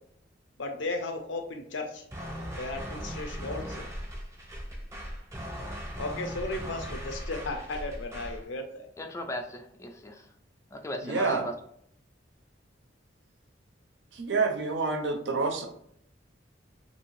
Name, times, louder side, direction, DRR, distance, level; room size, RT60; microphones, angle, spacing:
voice 1, 0.6-2.0 2.6-3.9 6.0-8.9, left 2 dB, 75° left, 5 dB, 0.5 m, -35 dB
sound 1, 2.1-8.4, equal, 15° right, 0.7 m, -38 dB
voice 2, 9.0-10.3 10.7-11.5, left 1 dB, 15° left, 5 dB, 0.3 m, -36 dB
voice 3, 11.0-11.4 14.1-15.7, right 4 dB, 70° right, 5 dB, 0.5 m, -28 dB
2.7 x 2.7 x 3.0 m, 0.69 s
head